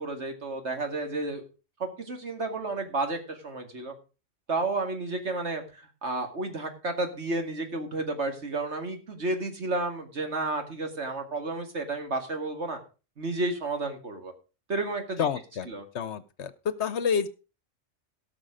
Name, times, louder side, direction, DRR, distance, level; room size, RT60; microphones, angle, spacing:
voice 1, 0.0-1.4 1.8-3.9 4.5-12.8 13.2-14.3 14.7-15.3 15.7-15.8, right 2 dB, 60° right, 5 dB, 2.3 m, -31 dB
voice 2, 15.2-15.7 15.9-17.3, left 7 dB, 65° left, 16 dB, 1.0 m, -28 dB
17.5 x 6.2 x 5.0 m, 0.33 s
omnidirectional pair, 1.3 m